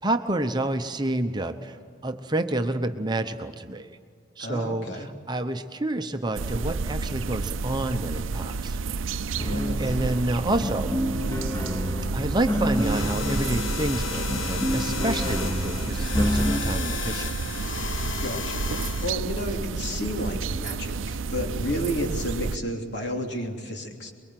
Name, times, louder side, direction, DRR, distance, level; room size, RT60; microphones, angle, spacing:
voice 1, 0.0-1.8 2.0-3.9 4.4-8.8 9.3-10.9 12.1-17.3, right 1 dB, 20° right, 7 dB, 0.9 m, -29 dB
voice 2, 4.4-5.1 9.4-9.9 18.0-18.7 19.0-24.1, equal, 65° left, 2 dB, 3.1 m, -32 dB
sound 1, 6.3-22.6, right 4 dB, 90° right, 0.6 m, -30 dB
sound 2, 9.4-16.6, equal, 15° left, 2.7 m, -29 dB
sound 3, 12.7-19.1, left 6 dB, 85° left, 1.3 m, -34 dB
24.0 x 23.0 x 7.6 m, 2.2 s
head